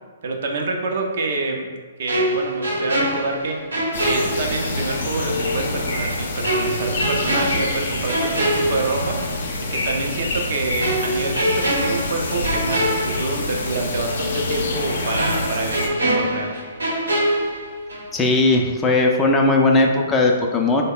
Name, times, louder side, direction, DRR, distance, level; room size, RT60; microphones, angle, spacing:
voice 1, 0.2-1.7 2.0-9.3 9.6-16.6, right 3 dB, 60° right, 2 dB, 0.5 m, -27 dB
sound 1, 2.1-5.0 5.3-5.5 6.4-9.4 9.7-9.9 10.8-13.8 14.1-14.2 15.2-18.2 18.4-18.7, right 1 dB, 85° right, 0.9 m, -24 dB
sound 2, 3.9-15.9, left 2 dB, 65° left, 0.6 m, -26 dB
voice 2, 18.1-20.8, left 2 dB, 15° left, 0 dB, 0.4 m, -17 dB
3.6 x 2.1 x 3.6 m, 1.4 s
hypercardioid pair, 130°, 0 cm